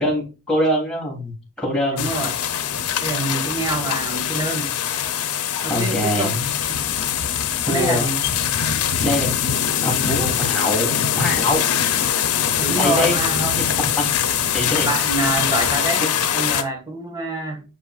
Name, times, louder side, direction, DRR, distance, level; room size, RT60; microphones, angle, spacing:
voice 1, 0.0-2.0 5.7-6.8 7.6-8.1 9.0-9.3 9.8-11.6 12.8-13.2 13.6-14.1 14.5-14.9 16.0-16.1, left 1 dB, 5° left, -2 dB, 2.8 m, -23 dB
voice 2, 1.9-2.3 3.0-4.7 5.6-6.4 7.7-8.2 12.6-13.5 14.8-16.1 16.3-17.6, right 2 dB, 20° right, 2 dB, 1.5 m, -26 dB
sound 1, 2.0-16.6, left 9 dB, 90° left, 0.7 m, -22 dB
10.0 x 4.9 x 2.4 m, 0.32 s
head